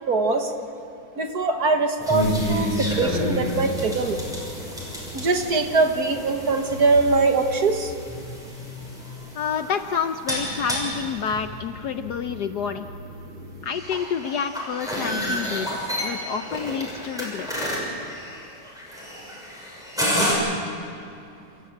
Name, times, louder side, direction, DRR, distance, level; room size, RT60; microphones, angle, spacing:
voice 1, 0.1-0.5 1.2-4.3 5.1-7.9, right 3 dB, 50° right, 5 dB, 1.8 m, -22 dB
sound 1, 2.0-20.3, equal, ahead, 6.3 m, -30 dB
voice 2, 9.3-12.9 13.6-17.5, left 7 dB, 65° left, 9 dB, 1.1 m, -29 dB
28.5 x 14.0 x 8.6 m, 2.6 s
omnidirectional pair, 2.2 m